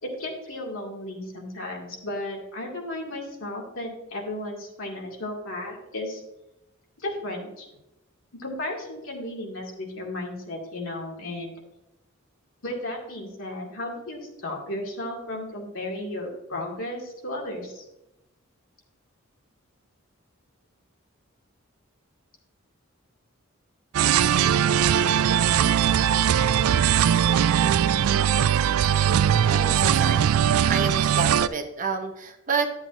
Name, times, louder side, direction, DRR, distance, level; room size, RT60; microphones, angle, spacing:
voice 1, 0.0-6.2 7.0-7.7 8.3-11.5 12.6-17.8, left 1 dB, 75° left, -1 dB, 2.2 m, -34 dB
sound 1, 23.9-31.5, right 9 dB, 85° right, 0.3 m, -20 dB
voice 2, 28.9-30.3 30.7-32.7, right 5 dB, 40° right, 5 dB, 0.9 m, -30 dB
10.5 x 7.8 x 2.6 m, 0.92 s
head